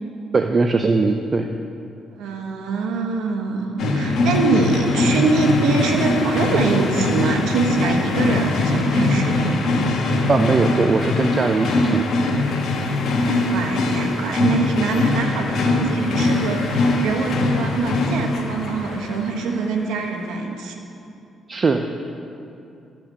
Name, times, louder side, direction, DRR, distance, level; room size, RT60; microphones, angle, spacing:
voice 1, 0.3-1.5 10.3-12.1 21.5-21.9, right 3 dB, 35° right, 6 dB, 0.5 m, -20 dB
voice 2, 2.1-9.5 13.2-20.8, right 3 dB, 85° right, 3 dB, 1.2 m, -24 dB
sound 1, 3.8-19.6, left 2 dB, 70° left, 1.3 m, -22 dB
13.0 x 5.9 x 6.5 m, 2.6 s
cardioid pair, 90°, 0 cm